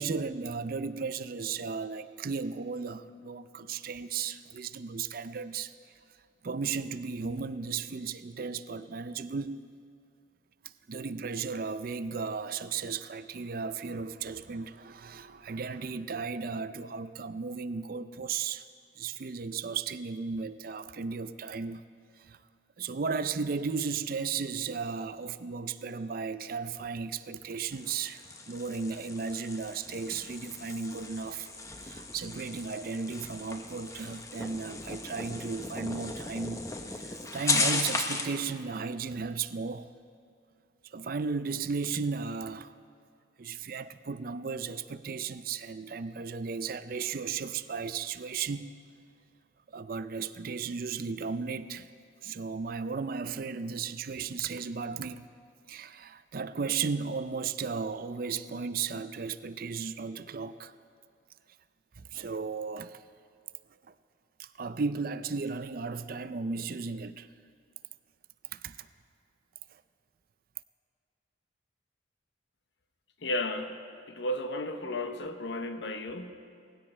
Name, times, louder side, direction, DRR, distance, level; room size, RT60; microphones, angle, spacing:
voice 1, 0.0-5.7 6.4-9.6 10.9-18.7 19.0-21.8 22.2-22.4 22.8-31.5 31.8-36.6 36.9-39.9 40.8-42.7 43.4-48.7 49.7-51.9 52.2-55.2 55.7-60.7 62.0-63.0 64.4-67.3 68.5-68.8 69.7-69.8, right 5 dB, 50° right, 0.5 m, -35 dB
sound 1, 27.7-38.4, left 3 dB, 15° left, 0.8 m, -36 dB
voice 2, 73.2-73.8 74.1-76.3, left 1 dB, 70° left, 1.0 m, -33 dB
19.0 x 16.0 x 4.4 m
head